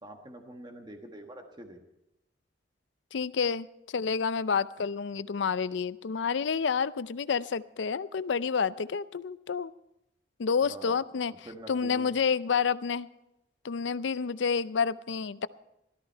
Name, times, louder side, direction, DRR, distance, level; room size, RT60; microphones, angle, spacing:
voice 1, 0.0-1.8 10.6-11.0 11.3-12.2, right 1 dB, 25° right, 4 dB, 1.3 m, -46 dB
voice 2, 3.1-9.7 10.4-11.3 11.7-13.1 13.6-15.5, left 6 dB, 85° left, 16 dB, 0.5 m, -29 dB
17.0 x 13.0 x 4.5 m, 0.87 s
head